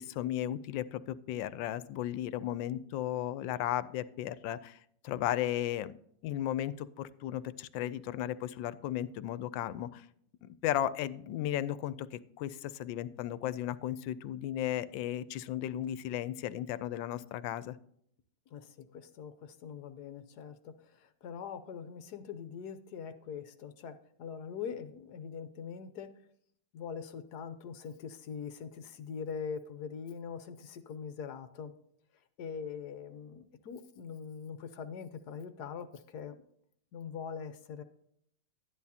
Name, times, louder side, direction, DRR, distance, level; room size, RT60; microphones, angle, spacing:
voice 1, 0.0-4.8 5.0-5.9 6.2-10.1 10.4-17.8, left 12 dB, 85° left, 15 dB, 1.3 m, -35 dB
voice 2, 18.5-26.1 26.7-31.7 32.4-36.4 36.9-37.8, left 6 dB, 70° left, 10 dB, 1.2 m, -43 dB
11.5 x 10.5 x 2.8 m, 0.69 s
omnidirectional pair, 2.0 m